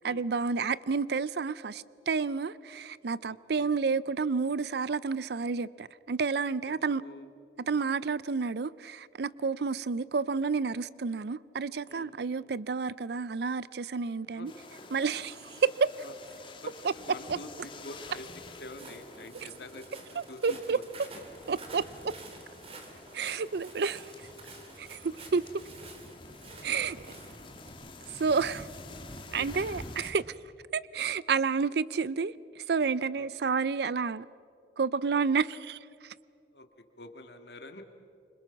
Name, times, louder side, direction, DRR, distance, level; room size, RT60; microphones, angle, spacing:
voice 1, 0.0-7.0 7.7-14.5 14.9-15.9 20.2-20.8 21.5-22.1 23.1-24.3 24.8-25.5 26.6-27.0 28.1-28.7 29.3-30.3 30.7-34.3 34.8-36.1, right 5 dB, 60° right, 0.5 m, -30 dB
voice 2, 3.2-3.7 6.7-7.3 11.9-12.1 14.3-14.5 16.0-16.1 16.4-18.3 18.6-20.8 29.3-29.7 33.2-33.5 36.5-36.7 37.0-37.8, left 1 dB, 65° left, 1.9 m, -47 dB
sound 1, 14.5-30.1, left 2 dB, 30° left, 1.7 m, -48 dB
Walk footsteps, 18.6-27.7, right 3 dB, 35° right, 2.7 m, -50 dB
27.5 x 25.0 x 5.9 m
head